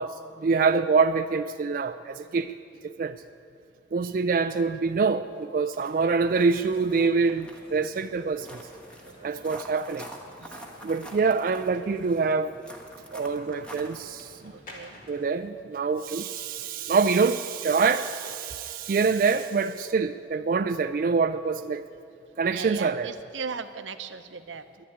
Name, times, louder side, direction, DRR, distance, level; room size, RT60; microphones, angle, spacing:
voice 1, 0.0-2.5 2.8-3.2 3.9-8.6 9.2-10.1 10.8-12.5 13.1-14.5 15.1-21.8 22.4-23.1, right 4 dB, 45° right, 8 dB, 0.3 m, -25 dB
sound 1, 5.3-5.4 5.7-14.0, right 1 dB, 5° left, 1.1 m, -47 dB
sound 2, 6.4-15.3, left 1 dB, 45° left, 2.3 m, -52 dB
voice 2, 9.0-9.6 10.4-10.5 14.5-15.0 17.0-17.2 22.4-24.8, right 5 dB, 90° right, 10 dB, 0.7 m, -38 dB
Wind instrument woodwind instrument, 16.1-20.5, right 2 dB, 15° right, 1.5 m, -54 dB
11.0 x 10.5 x 9.8 m, 2.5 s
head